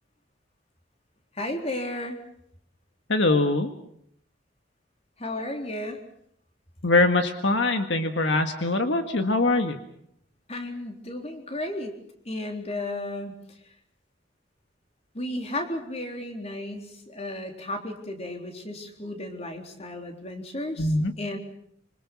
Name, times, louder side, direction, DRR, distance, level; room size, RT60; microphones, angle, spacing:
voice 1, 1.4-2.2 5.2-6.0 10.5-12.0 12.3-13.3 15.1-21.4, left 1 dB, 35° left, 3 dB, 3.8 m, -34 dB
voice 2, 3.1-3.7 6.8-9.8 20.8-21.1, left 2 dB, 70° left, 6 dB, 1.8 m, -22 dB
26.5 x 26.0 x 6.2 m, 0.69 s
head